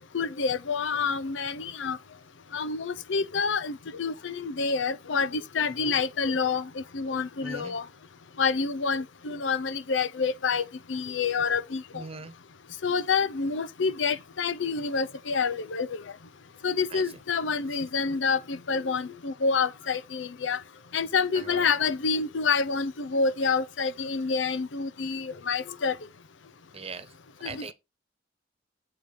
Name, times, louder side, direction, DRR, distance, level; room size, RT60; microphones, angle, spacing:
voice 1, 0.1-2.0 2.5-7.8 8.4-10.6 10.9-12.0 12.8-16.0 16.6-20.6 20.9-26.0 27.5-27.7, left 5 dB, 85° left, 0.6 m, -28 dB
voice 2, 7.4-7.8 11.9-12.3 16.9-17.0 21.3-21.7 26.7-27.7, right 3 dB, 35° right, 1.2 m, -41 dB
7.9 x 4.1 x 6.5 m
head